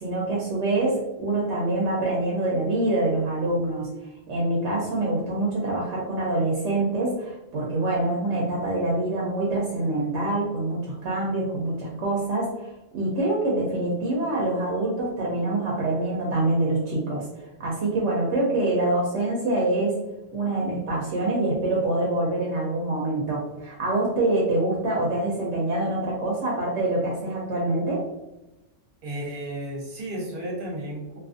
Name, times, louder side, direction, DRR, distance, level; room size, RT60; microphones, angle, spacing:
voice 1, 0.0-3.9 4.3-17.3 17.6-20.0 20.3-28.0, right 2 dB, 75° right, -3 dB, 0.9 m, -25 dB
voice 2, 29.0-31.2, right 1 dB, 50° right, -3 dB, 1.0 m, -33 dB
2.7 x 2.4 x 2.4 m, 0.97 s
omnidirectional pair, 1.2 m